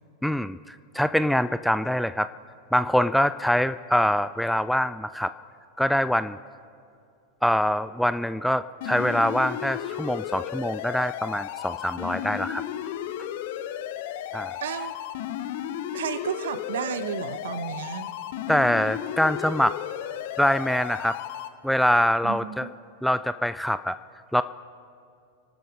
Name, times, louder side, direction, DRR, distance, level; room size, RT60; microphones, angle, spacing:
voice 1, 0.2-2.3 2.7-5.3 5.8-6.4 7.4-12.6 14.3-14.6 18.5-19.8 20.4-21.2 21.6-22.7 23.0-24.0 24.3-24.4, equal, ahead, 13 dB, 0.3 m, -24 dB
sound 1, 8.8-21.5, left 11 dB, 50° left, 0.8 m, -34 dB
voice 2, 14.6-15.0 15.9-18.1 22.2-22.7, right 8 dB, 60° right, 14 dB, 0.8 m, -32 dB
30.0 x 12.5 x 3.7 m, 2.5 s
figure-of-eight pair, 90°, 0 cm